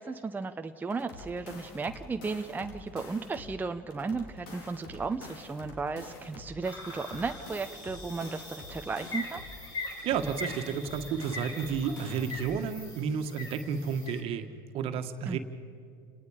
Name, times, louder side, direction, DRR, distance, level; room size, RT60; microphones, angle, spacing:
voice 1, 0.0-9.4 15.3-15.4, right 4 dB, 15° right, 6 dB, 0.8 m, -35 dB
sound 1, 0.9-3.6 3.9-6.6 6.9-9.6 9.9-12.6, left 3 dB, 70° left, 4.0 m, -47 dB
sound 2, 6.6-14.2, left 2 dB, 35° left, 6.5 m, -42 dB
voice 2, 10.0-15.4, right 6 dB, 50° right, 7 dB, 1.7 m, -32 dB
29.5 x 19.0 x 5.0 m, 2.4 s
hypercardioid pair, 80°, 12 cm